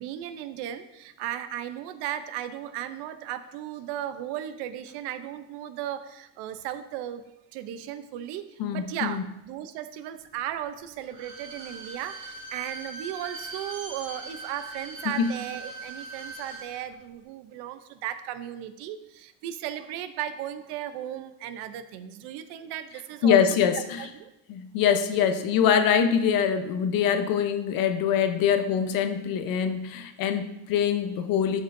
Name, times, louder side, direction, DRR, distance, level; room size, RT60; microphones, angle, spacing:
voice 1, 0.0-7.2 7.5-23.4 24.0-24.3 24.9-25.3, right 11 dB, 75° right, 11 dB, 0.7 m, -36 dB
voice 2, 8.6-9.2 15.0-15.3 23.2-24.1 24.5-31.6, left 8 dB, 55° left, 8 dB, 0.8 m, -24 dB
Bowed string instrument, 11.0-16.7 17.0-17.1, right 3 dB, 45° right, 2.2 m, -41 dB
12.5 x 5.4 x 2.6 m, 0.87 s
cardioid pair, 140°, 41 cm